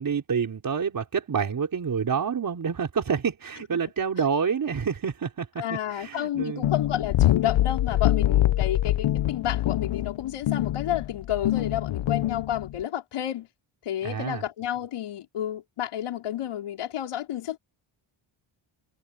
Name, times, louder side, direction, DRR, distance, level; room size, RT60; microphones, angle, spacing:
voice 1, 0.0-5.6 5.9-6.7 14.0-14.4, right 6 dB, 40° right, 4.3 m, -28 dB
voice 2, 5.6-13.5 13.8-17.6, left 11 dB, 80° left, 4.1 m, -31 dB
sound 1, 6.6-12.8, left 14 dB, 65° left, 0.9 m, -24 dB
cardioid pair, 135°, 50 cm